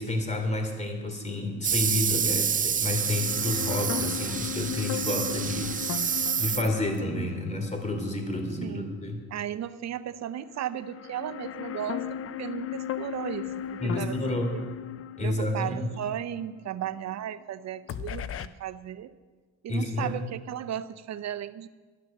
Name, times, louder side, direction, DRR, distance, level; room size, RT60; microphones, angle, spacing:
voice 1, 0.0-9.2 13.8-14.5 15.2-15.9 19.7-20.2, left 2 dB, 25° left, 4 dB, 3.0 m, -30 dB
sound 1, 1.6-7.0, right 7 dB, 30° right, 0.4 m, -28 dB
sound 2, 2.8-9.1 9.4-9.5 10.6-17.5 17.9-18.5, left 10 dB, 50° left, 0.6 m, -37 dB
voice 2, 8.6-9.0 9.3-12.0 12.4-14.2 14.5-14.6 15.2-19.1 19.6-21.7, right 11 dB, 60° right, 13 dB, 0.7 m, -35 dB
12.0 x 11.5 x 6.7 m, 1.4 s
cardioid pair, 90°, 30 cm